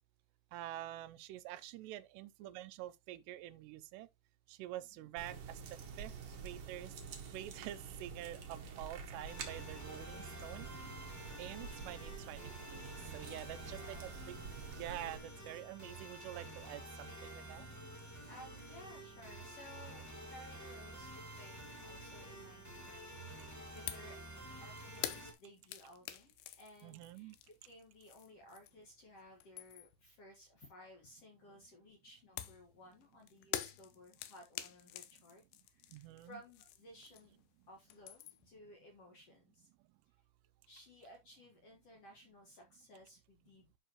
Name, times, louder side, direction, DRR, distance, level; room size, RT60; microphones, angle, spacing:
voice 1, 0.5-4.1 4.5-6.1 6.4-6.9 7.3-10.7 11.4-14.4 14.7-17.7 26.8-27.4 35.9-36.4, right 13 dB, 85° right, 2.8 m, -47 dB
voice 2, 4.8-5.1 13.3-14.2 18.2-24.2 24.6-37.4 37.7-39.7 40.7-43.8, left 1 dB, 55° left, 1.9 m, -58 dB
sound 1, 5.2-15.2, right 5 dB, 60° right, 1.5 m, -48 dB
sound 2, 9.2-25.3, right 1 dB, 5° left, 1.4 m, -50 dB
sound 3, 23.9-24.2 24.4-28.9 29.3-30.0 32.4-37.5 37.7-38.5, left 13 dB, 80° left, 3.0 m, -46 dB
11.0 x 5.5 x 3.0 m
omnidirectional pair, 4.9 m